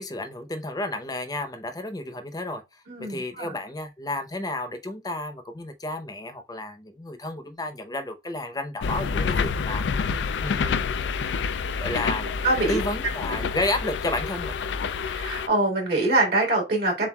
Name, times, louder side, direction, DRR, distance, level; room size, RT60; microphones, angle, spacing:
voice 1, 0.0-2.6 3.0-10.1 10.4-11.0 11.8-12.3 12.7-14.6, left 1 dB, 20° left, 0.7 m, -32 dB
voice 2, 2.9-3.5 12.4-12.8 15.1-17.1, right 2 dB, 65° right, 2.2 m, -24 dB
sound 1, 8.8-15.5, left 5 dB, 90° left, 0.4 m, -28 dB
7.2 x 2.5 x 2.3 m
head